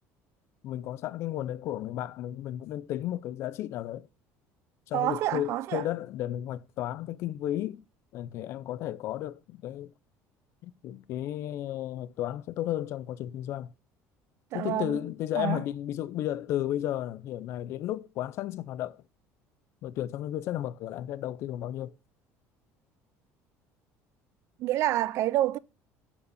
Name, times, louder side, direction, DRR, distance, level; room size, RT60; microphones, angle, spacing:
voice 1, 0.6-4.1 4.9-7.8 8.1-9.9 10.6-13.7 14.5-19.0 19.8-21.9, left 12 dB, 50° left, 0.4 m, -33 dB
voice 2, 4.9-5.8 14.5-15.0 15.3-15.6 24.6-25.6, right 14 dB, 50° right, 0.4 m, -28 dB
9.4 x 4.2 x 6.9 m
cardioid pair, 165°, 6 cm